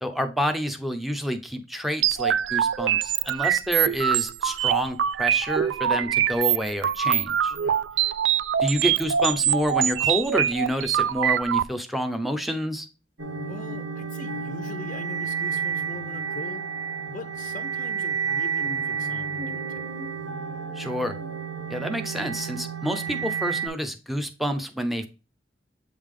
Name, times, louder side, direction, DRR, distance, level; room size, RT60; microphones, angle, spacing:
voice 1, 0.0-7.5 8.6-12.9 20.8-21.2 21.7-25.1, equal, ahead, 0.6 m, -28 dB
sound 1, 2.0-11.6, right 10 dB, 85° right, 0.3 m, -24 dB
voice 2, 7.5-7.9 13.4-16.7 17.1-19.9, left 3 dB, 45° left, 0.5 m, -41 dB
sound 2, 13.2-23.7, right 6 dB, 65° right, 1.1 m, -31 dB
8.1 x 3.4 x 3.7 m
head